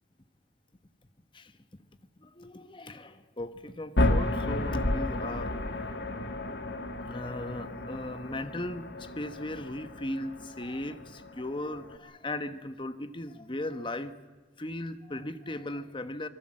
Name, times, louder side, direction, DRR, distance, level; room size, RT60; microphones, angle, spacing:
voice 1, 2.2-5.9 7.0-14.2 14.6-16.3, left 1 dB, 25° left, 11 dB, 1.1 m, -37 dB
sound 1, 4.0-12.0, left 1 dB, 65° left, 1.7 m, -32 dB
25.5 x 21.0 x 7.6 m, 1.3 s
head